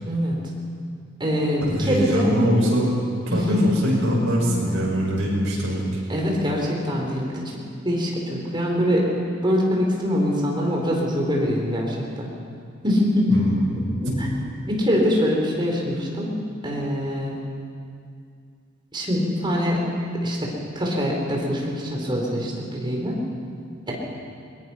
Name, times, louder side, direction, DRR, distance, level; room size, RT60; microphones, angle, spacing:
voice 1, 0.1-0.4 1.2-2.3 3.3-3.7 4.4-4.8 6.1-7.4 7.8-9.1 9.4-12.3 12.8-13.3 14.0-14.3 14.7-16.3 16.6-17.4 18.9-19.8 20.2-20.4 20.7-23.2, equal, 25° right, -2 dB, 4.5 m, -23 dB
voice 2, 1.7-2.9 3.3-5.8 13.3-13.8, equal, 65° right, -4 dB, 6.9 m, -23 dB
21.5 x 21.0 x 6.0 m, 2.3 s
head